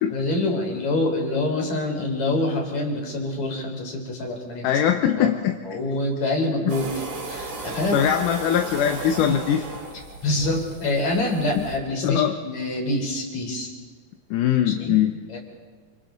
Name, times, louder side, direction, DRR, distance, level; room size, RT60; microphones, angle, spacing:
voice 1, 0.1-4.7 5.1-5.3 5.7-6.9 7.3-8.0 8.8-8.9 9.2-9.4 10.2-13.7 14.7-15.0 15.3-15.4, left 2 dB, 55° left, 1 dB, 5.1 m, -26 dB
voice 2, 4.6-5.5 7.9-9.6 11.5-11.6 12.0-12.4 14.3-15.1, left 10 dB, 75° left, 5 dB, 2.4 m, -21 dB
sound 1, 6.7-11.8, right 3 dB, 60° right, 4.8 m, -35 dB
28.5 x 28.0 x 4.0 m, 1.5 s
omnidirectional pair, 3.9 m